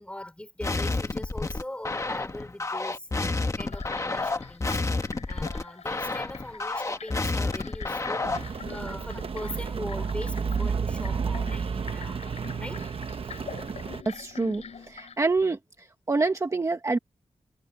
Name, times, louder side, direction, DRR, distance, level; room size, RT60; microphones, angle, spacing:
voice 1, 0.0-4.8 5.3-12.2 12.6-12.9 13.2-13.4, left 1 dB, 10° left, 5.4 m, -40 dB
sound 1, 0.6-8.6, left 3 dB, 25° left, 1.5 m, -30 dB
sound 2, 3.6-15.2, left 6 dB, 75° left, 4.4 m, -45 dB
Rain, 8.2-14.0, right 5 dB, 55° right, 0.9 m, -31 dB
voice 2, 14.0-15.6 16.1-17.0, right 3 dB, 25° right, 1.5 m, -26 dB
wide cardioid pair, 155°, 12 cm